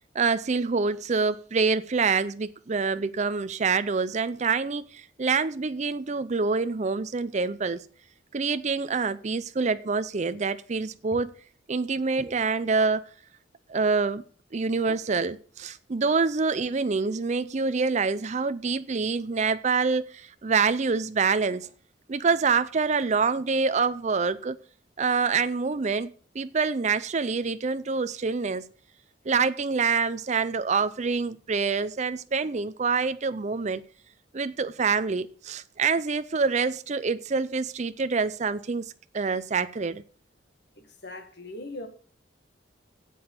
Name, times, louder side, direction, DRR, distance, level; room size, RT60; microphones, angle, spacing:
voice 1, 0.1-7.8 8.3-11.3 11.7-13.0 13.7-14.2 14.5-21.7 22.1-24.6 25.0-28.6 29.3-33.8 34.3-38.8 39.1-40.0, right 4 dB, 40° right, 0.5 m, -26 dB
voice 2, 40.8-41.9, left 2 dB, 60° left, 1.9 m, -40 dB
7.9 x 7.7 x 8.0 m
head